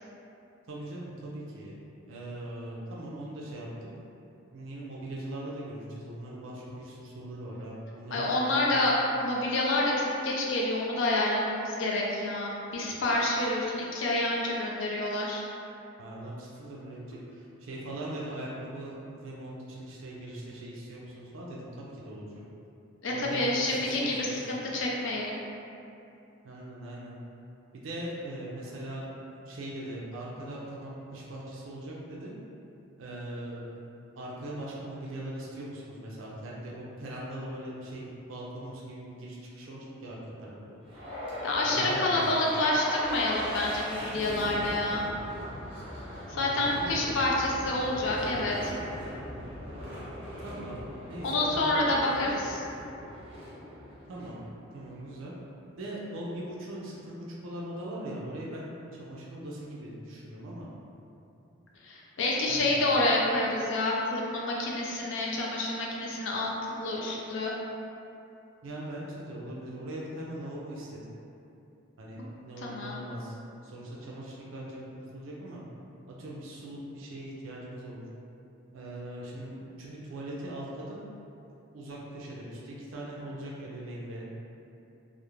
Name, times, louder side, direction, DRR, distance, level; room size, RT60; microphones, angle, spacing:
voice 1, 0.7-1.8 2.1-3.7 4.5-8.7 16.0-22.4 23.1-24.5 26.4-27.2 27.7-32.3 33.0-33.6 34.2-40.8 41.6-42.6 46.3-47.1 50.4-50.8 51.1-51.8 54.1-54.4 54.7-55.3 55.8-60.7 62.5-62.9 68.6-71.0 72.0-73.3 73.6-75.6 76.2-78.0 78.7-81.0 81.7-84.4, right 1 dB, 75° right, -5 dB, 0.4 m, -40 dB
voice 2, 8.1-15.4 23.0-25.4 41.4-45.1 46.3-48.7 51.2-52.6 61.8-66.5 66.8-67.5 72.6-73.0, left 2 dB, 65° left, -3 dB, 0.4 m, -28 dB
sound 1, 40.9-55.0, left 1 dB, 25° right, 0.6 m, -39 dB
2.4 x 2.0 x 3.0 m, 2.7 s
head